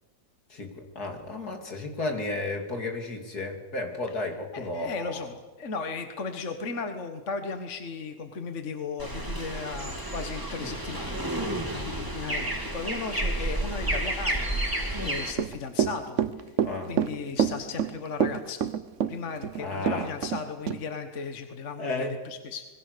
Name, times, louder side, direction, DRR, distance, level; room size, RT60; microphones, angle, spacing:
voice 1, 0.5-5.2 16.6-16.9 19.6-20.1 21.8-22.1, left 2 dB, 70° left, 4 dB, 3.4 m, -33 dB
voice 2, 4.5-14.5 15.0-18.7 19.1-22.7, left 5 dB, 50° left, 7 dB, 1.6 m, -36 dB
sound 1, 9.0-15.3, right 1 dB, 10° right, 3.0 m, -31 dB
Run / Walk footsteps, 15.3-20.4 20.7-20.8, right 8 dB, 55° right, 1.2 m, -26 dB
27.0 x 21.0 x 6.8 m, 1.3 s
omnidirectional pair, 1.7 m